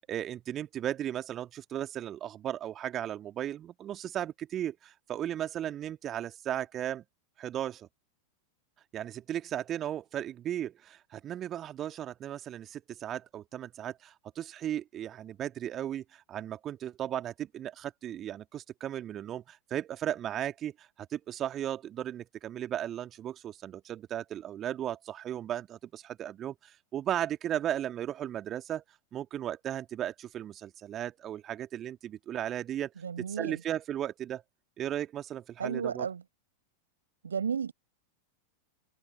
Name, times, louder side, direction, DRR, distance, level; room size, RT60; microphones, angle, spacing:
voice 1, 0.0-7.0 7.4-7.9 8.9-28.8 29.1-32.9 33.2-34.4 34.8-36.1, right 11 dB, 30° right, 2.0 m, -36 dB
voice 2, 33.0-33.6 35.6-36.2 37.2-37.7, right 7 dB, 70° right, 5.1 m, -33 dB
figure-of-eight pair, 90°, 0 cm